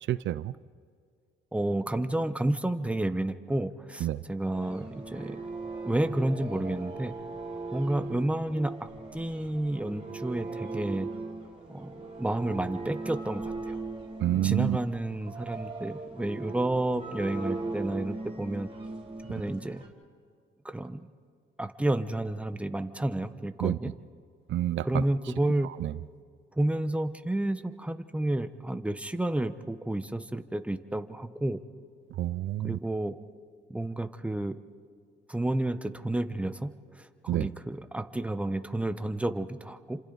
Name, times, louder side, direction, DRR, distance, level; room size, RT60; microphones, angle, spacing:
voice 1, 0.1-0.5 4.0-4.2 14.2-14.8 23.6-23.8 24.5-25.0 25.8-25.9 32.2-32.8 37.3-37.5, right 13 dB, 70° right, 15 dB, 0.5 m, -28 dB
voice 2, 1.5-5.4 5.8-7.1 7.7-8.7 9.1-11.1 11.7-13.8 14.4-18.7 19.3-19.8 20.6-21.1 21.6-23.9 24.8-25.7 26.6-31.6 32.6-33.1 33.7-34.5 35.3-36.7 37.2-40.0, right 1 dB, 5° right, 9 dB, 1.0 m, -30 dB
sound 1, 4.5-19.9, right 3 dB, 25° right, 4.6 m, -39 dB
28.5 x 26.5 x 4.0 m, 2.1 s
cardioid pair, 90°, 20 cm